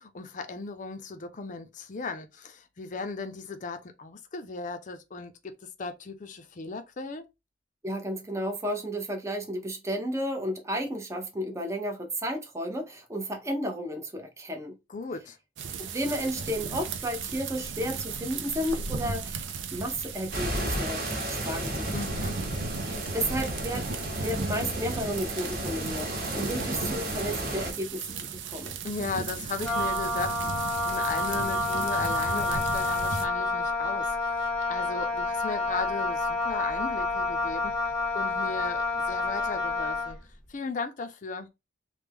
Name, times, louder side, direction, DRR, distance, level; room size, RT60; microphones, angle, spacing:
voice 1, 0.0-5.3 5.6-7.3 14.9-15.4 21.9-22.4 28.8-40.2 40.5-41.5, left 4 dB, 40° left, 0.5 m, -36 dB
voice 2, 7.8-14.8 15.8-19.4 19.7-21.9 23.1-23.9 24.1-28.8, equal, 15° right, 0.6 m, -32 dB
sound 1, 15.6-33.3, right 4 dB, 80° right, 0.5 m, -36 dB
sound 2, 20.3-27.7, equal, 50° right, 1.1 m, -34 dB
Wind instrument woodwind instrument, 29.6-40.2, left 2 dB, 5° left, 1.2 m, -29 dB
3.2 x 2.2 x 3.4 m
head